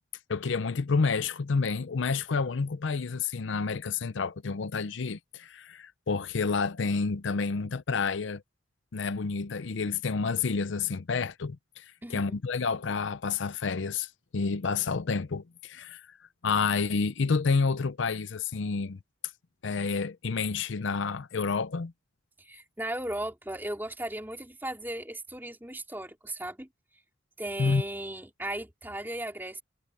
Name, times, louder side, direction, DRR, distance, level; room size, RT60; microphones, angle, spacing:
voice 1, 0.3-8.4 8.9-16.2 16.4-19.0 19.6-21.9 27.6-27.8, left 4 dB, 75° left, 0.6 m, -29 dB
voice 2, 12.0-12.4 22.4-26.7 27.4-29.6, right 1 dB, 10° right, 2.9 m, -36 dB
head